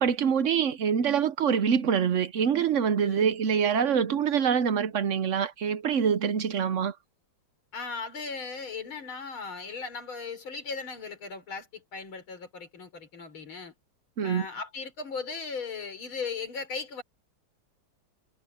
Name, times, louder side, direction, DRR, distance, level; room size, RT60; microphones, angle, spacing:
voice 1, 0.0-6.9 14.2-14.4, right 7 dB, 60° right, 0.8 m, -25 dB
voice 2, 7.7-13.7 14.2-17.0, left 4 dB, 85° left, 4.6 m, -37 dB
omnidirectional pair, 2.2 m